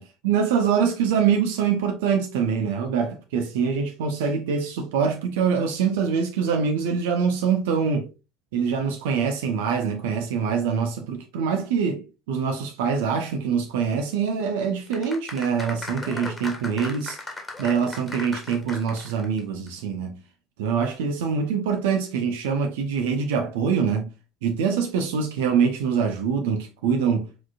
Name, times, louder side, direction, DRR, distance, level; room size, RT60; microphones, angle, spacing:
voice 1, 0.0-8.1 8.5-17.2 17.6-20.2 20.6-24.1 24.4-27.3, right 6 dB, 65° right, 0.6 m, -24 dB
sound 1, 14.9-19.4 19.7-19.8, left 2 dB, 15° left, 1.5 m, -37 dB
4.4 x 4.4 x 2.4 m
figure-of-eight pair, 65°, 0 cm